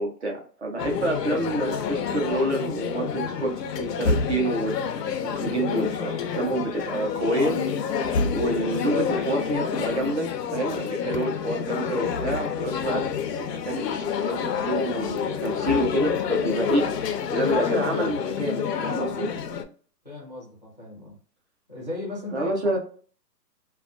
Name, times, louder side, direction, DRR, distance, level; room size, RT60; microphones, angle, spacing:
voice 1, 0.0-4.8 5.2-7.6 8.3-13.0 13.4-16.8 17.3-19.3 22.3-22.8, right 1 dB, 45° right, 0.6 m, -28 dB
sound 1, 0.8-19.6, left 6 dB, 75° left, 0.5 m, -28 dB
voice 2, 20.0-21.2 21.7-22.8, left 2 dB, 30° left, 0.4 m, -36 dB
2.3 x 2.2 x 2.4 m
hypercardioid pair, 170°, 49 cm